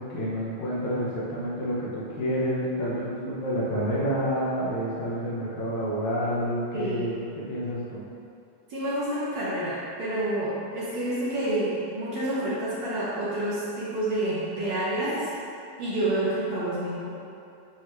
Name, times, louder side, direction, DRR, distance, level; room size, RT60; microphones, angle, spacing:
voice 1, 0.0-8.0, equal, 65° left, -7 dB, 1.3 m, -29 dB
voice 2, 6.7-7.1 8.7-15.2 15.8-17.1, right 1 dB, 65° right, -10 dB, 2.0 m, -28 dB
9.3 x 3.6 x 3.2 m, 2.5 s
omnidirectional pair, 3.8 m